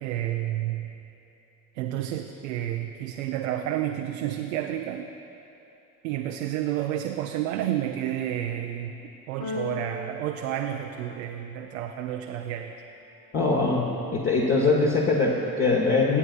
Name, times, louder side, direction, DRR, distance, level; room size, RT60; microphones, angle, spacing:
voice 1, 0.0-0.9 1.7-5.1 6.0-9.0 9.3-12.8, right 12 dB, 60° right, 4 dB, 0.6 m, -30 dB
Keyboard (musical), 9.4-11.5, left 3 dB, 45° left, 1.1 m, -38 dB
voice 2, 13.3-13.9 14.1-16.2, left 3 dB, 30° left, -4 dB, 1.3 m, -22 dB
25.5 x 8.9 x 2.5 m, 2.9 s
figure-of-eight pair, 55°, 46 cm